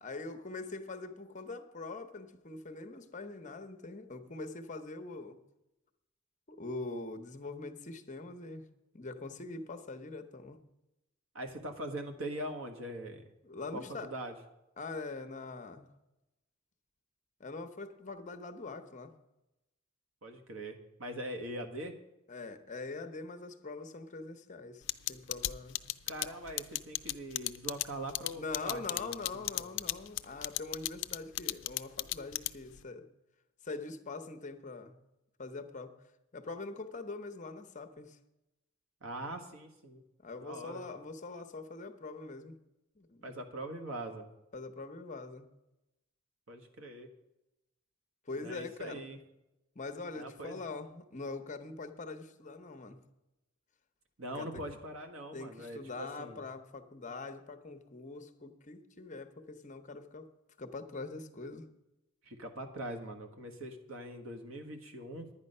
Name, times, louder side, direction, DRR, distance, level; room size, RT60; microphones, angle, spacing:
voice 1, 0.0-5.4 6.5-8.7 8.9-10.6 13.4-14.1 14.8-15.9 17.4-19.1 22.3-25.8 28.4-33.0 33.6-34.9 35.4-36.0 36.3-38.2 40.2-42.6 43.0-43.3 44.5-45.5 48.3-49.0 49.7-53.0 54.3-54.6 55.3-60.3 60.6-61.7, left 3 dB, 40° left, 8 dB, 0.8 m, -43 dB
voice 2, 11.3-13.2 13.7-14.3 20.2-21.9 26.1-29.1 29.3-29.7 39.0-40.0 40.4-40.8 43.2-44.3 46.5-47.1 48.4-49.2 50.1-50.6 54.2-56.4 62.2-65.3, right 1 dB, 90° right, 5 dB, 1.5 m, -42 dB
sound 1, 24.9-32.8, left 16 dB, 65° left, 0.4 m, -34 dB
10.5 x 9.8 x 5.4 m, 0.94 s
head